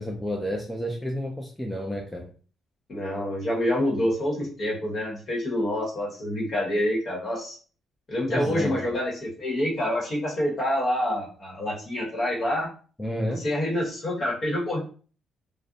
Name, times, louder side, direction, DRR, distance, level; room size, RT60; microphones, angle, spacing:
voice 1, 0.0-2.3 8.3-8.9 13.0-13.4, equal, 5° left, 0 dB, 0.4 m, -30 dB
voice 2, 2.9-7.6 8.1-12.7 13.4-14.8, left 1 dB, 45° left, -3 dB, 1.1 m, -27 dB
2.5 x 2.1 x 2.5 m, 0.40 s
cardioid pair, 90°, 0 cm